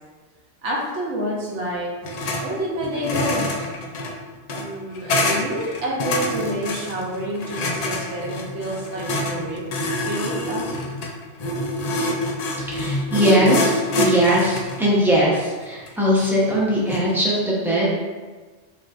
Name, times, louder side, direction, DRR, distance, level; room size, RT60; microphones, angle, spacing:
voice 1, 0.6-1.9 2.4-3.5 4.6-9.6 10.0-10.8, equal, 80° right, -4 dB, 1.2 m, -28 dB
sound 1, 2.0-2.4 2.7-17.1, left 1 dB, 55° left, 0.4 m, -26 dB
voice 2, 12.6-18.0, equal, ahead, -7 dB, 0.8 m, -20 dB
5.0 x 2.9 x 2.5 m, 1.3 s
omnidirectional pair, 1.2 m